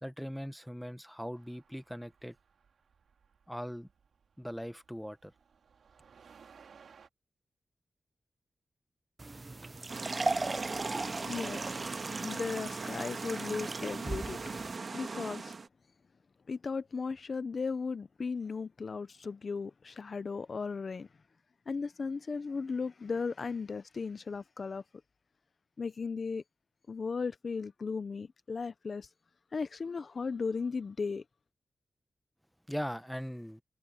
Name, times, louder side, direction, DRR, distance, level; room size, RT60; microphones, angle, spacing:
voice 1, 0.0-2.4 3.5-3.9 4.4-5.3 32.7-33.6, equal, ahead, 0.9 m, -40 dB
sound 1, 1.4-7.1, right 6 dB, 90° right, 3.7 m, -61 dB
sound 2, 9.2-14.8, right 3 dB, 25° right, 0.4 m, -37 dB
sound 3, 9.9-15.7, right 4 dB, 45° right, 1.5 m, -40 dB
voice 2, 11.3-11.7 12.2-14.6 14.9-15.6 16.5-21.1 21.7-24.8 25.8-26.4 26.9-29.1 29.5-31.2, left 4 dB, 45° left, 0.5 m, -36 dB
wide cardioid pair, 150°, 0 cm